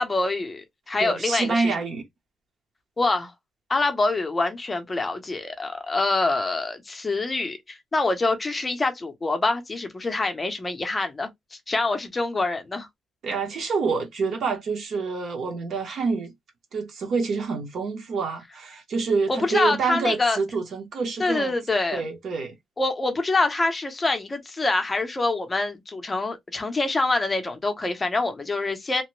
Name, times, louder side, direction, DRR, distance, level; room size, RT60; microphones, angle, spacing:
voice 1, 0.0-1.8 3.0-3.3 3.7-12.9 19.3-20.4 21.2-22.0 22.8-29.0, left 3 dB, 15° left, 0.6 m, -25 dB
voice 2, 1.0-2.0 13.2-16.3 16.7-21.5 21.9-22.5, right 4 dB, 50° right, 0.9 m, -27 dB
2.9 x 2.1 x 3.0 m
cardioid pair, 170°, 0 cm